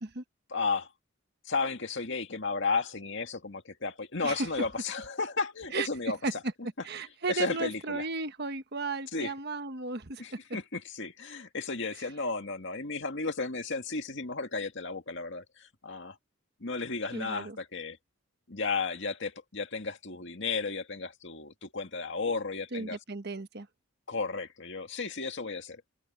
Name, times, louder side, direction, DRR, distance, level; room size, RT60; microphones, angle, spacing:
voice 1, 0.5-0.9 1.4-6.4 7.3-8.1 9.1-9.3 10.2-16.2 16.6-18.0 18.5-23.0 24.1-25.8, left 4 dB, 55° left, 2.2 m, -33 dB
voice 2, 6.8-10.4 17.1-17.6 22.7-23.7, right 3 dB, 50° right, 1.3 m, -34 dB
open air
head